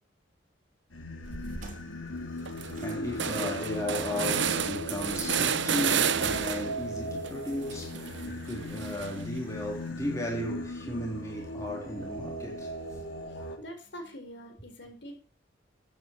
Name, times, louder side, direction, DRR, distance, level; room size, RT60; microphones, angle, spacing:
Singing, 0.9-13.6, left 1 dB, 75° left, 3.1 m, -38 dB
sound 1, 1.2-1.7 2.1-2.2 2.5-6.9 7.2-9.4, right 7 dB, 65° right, 1.0 m, -31 dB
sound 2, 1.5-7.1, right 3 dB, 40° right, 2.9 m, -52 dB
voice 1, 2.4-12.8, left 1 dB, 15° left, 3.4 m, -35 dB
voice 2, 13.6-15.2, equal, 60° left, 4.3 m, -44 dB
14.0 x 9.1 x 4.5 m
head